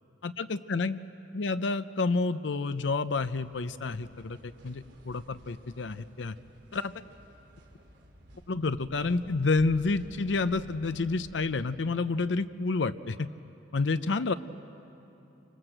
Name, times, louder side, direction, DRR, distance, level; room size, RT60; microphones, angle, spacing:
voice 1, 0.2-1.0 1.3-6.3 6.7-6.9 8.5-13.3 13.7-14.3, left 3 dB, 80° left, 12 dB, 0.6 m, -29 dB
sound 1, 3.1-11.6, equal, 65° right, 3.4 m, -53 dB
28.5 x 26.0 x 7.9 m, 2.9 s
head